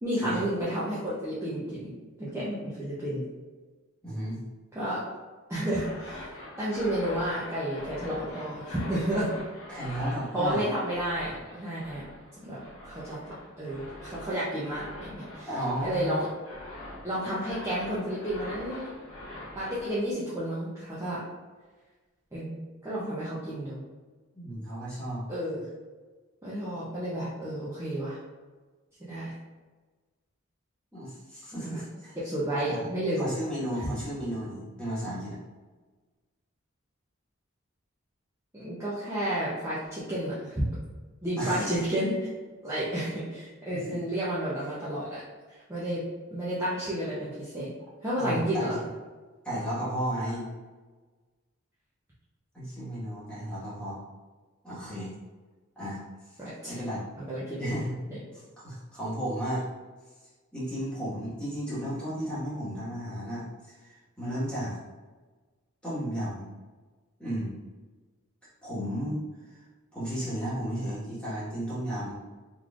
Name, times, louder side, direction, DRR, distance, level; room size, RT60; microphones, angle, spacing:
voice 1, 0.0-1.9 2.2-3.2 4.7-5.0 5.5-6.3 6.6-9.3 10.3-12.0 12.4-13.2 13.6-15.5 15.8-16.3 17.0-18.9 19.5-21.2 22.3-23.9 25.3-25.7 26.4-28.2 29.0-29.3 31.6-31.8 32.2-33.3 38.6-40.6 41.2-42.3 42.6-45.2 45.5-47.7 48.0-48.8 56.4-56.8 57.2-57.7 58.1-58.2, right 1 dB, 15° right, -10 dB, 0.6 m, -31 dB
voice 2, 4.0-4.4 9.7-10.6 15.5-16.2 24.3-25.2 30.9-32.1 32.6-32.9 33.2-35.4 41.3-41.7 43.7-44.0 48.1-48.7 49.4-50.5 52.5-54.0 54.6-55.1 55.7-56.0 56.3-56.4 56.7-57.0 57.6-57.9 58.3-59.6 60.5-64.8 65.8-66.5 67.2-67.6 68.6-69.2 69.9-72.1, equal, 5° left, -10 dB, 1.4 m, -33 dB
sound 1, 5.6-20.0, left 1 dB, 90° left, 1.2 m, -44 dB
3.8 x 3.2 x 2.4 m, 1.3 s
head